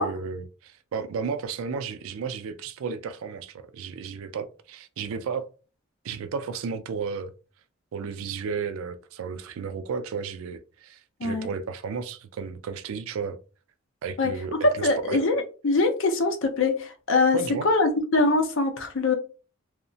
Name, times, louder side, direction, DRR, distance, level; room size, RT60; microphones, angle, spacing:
voice 1, 0.0-5.5 6.0-7.3 7.9-13.4 14.0-15.2 17.3-17.7, right 6 dB, 75° right, 0.3 m, -33 dB
voice 2, 14.8-19.1, left 3 dB, 65° left, 0.6 m, -23 dB
2.8 x 2.1 x 2.6 m
head